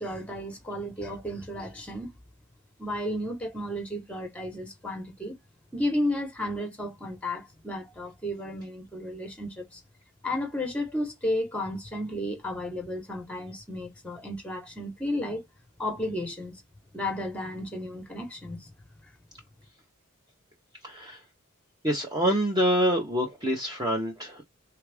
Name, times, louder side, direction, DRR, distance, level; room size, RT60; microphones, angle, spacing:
voice 1, 0.0-2.1 2.8-5.4 5.7-9.8 10.2-15.4 15.8-16.6 16.9-18.7 19.0-19.1, left 1 dB, 5° left, 0.9 m, -33 dB
voice 2, 20.8-21.2 21.8-24.4, equal, 20° right, 0.6 m, -26 dB
3.4 x 2.4 x 3.3 m
head